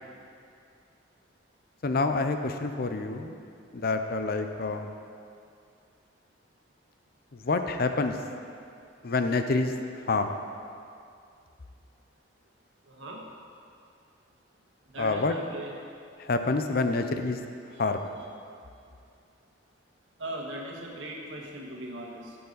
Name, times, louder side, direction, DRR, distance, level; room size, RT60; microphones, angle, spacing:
voice 1, 1.8-3.4 3.7-4.9 7.3-8.2 9.0-9.7 10.0-10.3 15.0-15.3 16.2-17.4 17.8-18.1, left 3 dB, 50° left, 7 dB, 0.6 m, -27 dB
voice 2, 12.9-13.2 14.9-15.7 20.2-22.4, right 1 dB, 85° right, -1 dB, 1.6 m, -39 dB
14.0 x 6.9 x 4.0 m, 2.4 s
head